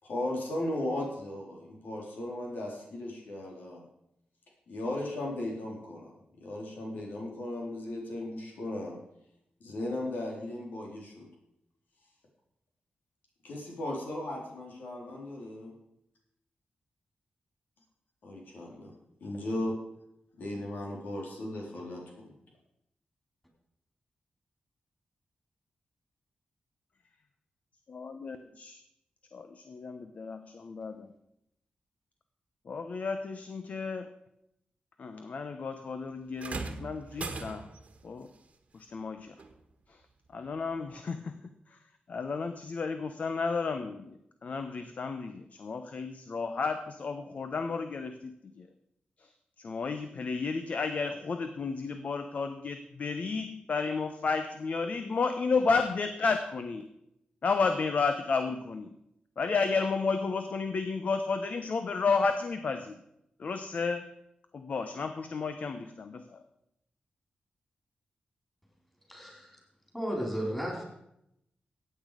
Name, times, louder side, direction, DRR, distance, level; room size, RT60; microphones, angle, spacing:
voice 1, 0.0-3.8 4.7-6.1 6.4-9.0 9.6-11.3 13.4-15.7 18.2-18.9 19.2-19.7 20.4-22.3, left 1 dB, 85° left, -2 dB, 3.9 m, -36 dB
voice 2, 27.9-28.8 29.3-31.1 32.7-34.1 35.0-37.7 38.0-38.3 38.7-39.3 40.3-41.4 42.1-44.1 44.4-48.7 49.6-56.9 57.4-58.9 59.4-63.0 63.4-64.1 64.5-66.4, left 4 dB, 55° left, 8 dB, 0.8 m, -32 dB
sound 1, 36.4-37.9 39.4-39.5 40.4-40.5, right 4 dB, 50° right, 1.4 m, -39 dB
voice 3, 69.1-69.6 69.9-70.8, equal, 5° left, -1 dB, 4.4 m, -34 dB
15.5 x 8.8 x 5.1 m, 0.80 s
wide cardioid pair, 120°, 3 cm